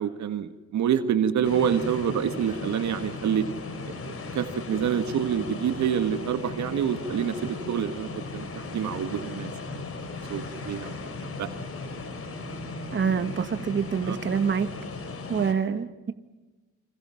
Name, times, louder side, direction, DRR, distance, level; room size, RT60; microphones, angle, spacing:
voice 1, 0.0-3.5 3.9-9.5 10.3-11.1 11.4-11.5 14.0-14.2, right 8 dB, 70° right, 9 dB, 1.8 m, -27 dB
sound 1, 1.4-15.5, left 3 dB, 50° left, 4.9 m, -37 dB
voice 2, 12.9-14.7 15.3-16.1, right 6 dB, 40° right, 8 dB, 2.0 m, -26 dB
28.5 x 27.0 x 5.9 m, 1.2 s
cardioid pair, 90°, 30 cm